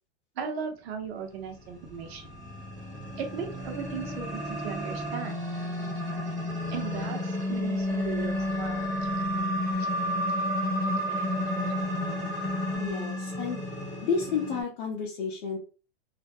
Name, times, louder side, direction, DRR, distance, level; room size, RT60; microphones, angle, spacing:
voice 1, 0.4-2.2 3.2-5.3 6.7-8.9 9.8-9.9 11.1-11.3, right 6 dB, 70° right, 3 dB, 0.9 m, -37 dB
sound 1, 1.5-14.6, left 1 dB, 5° left, 1.0 m, -31 dB
voice 2, 12.7-13.6 14.0-15.6, left 5 dB, 50° left, -2 dB, 0.7 m, -31 dB
2.5 x 2.1 x 2.8 m, 0.35 s
supercardioid pair, 155°, 33 cm